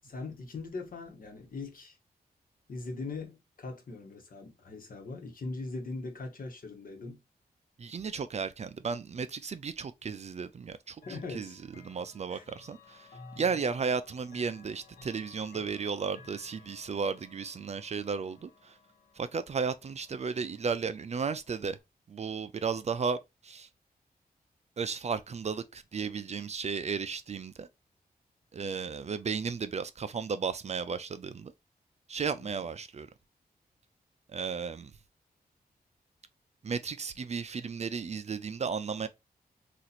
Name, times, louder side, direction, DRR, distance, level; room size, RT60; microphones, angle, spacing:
voice 1, 0.0-2.0 2.7-7.2 11.1-11.6 12.3-12.4 32.4-32.7, left 3 dB, 60° left, 1.1 m, -41 dB
voice 2, 7.8-11.6 11.8-13.1 13.4-18.8 19.2-21.8 22.1-23.2 23.4-23.7 24.8-27.7 28.5-31.5 32.1-33.1 34.3-34.9 36.6-39.1, right 5 dB, 45° right, 0.4 m, -34 dB
Chime / Clock, 11.0-21.8, left 4 dB, 85° left, 1.1 m, -56 dB
2.9 x 2.5 x 4.1 m
wide cardioid pair, 85°, 16 cm